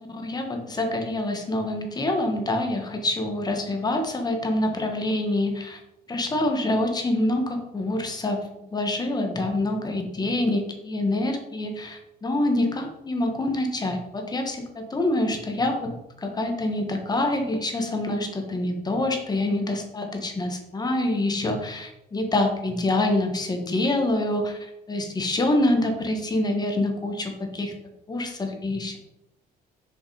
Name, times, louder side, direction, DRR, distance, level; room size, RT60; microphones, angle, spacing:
voice 1, 0.1-5.8 6.1-27.7 28.1-29.0, left 1 dB, 25° left, 4 dB, 1.6 m, -26 dB
6.9 x 5.3 x 4.9 m, 0.87 s
cardioid pair, 110°, 17 cm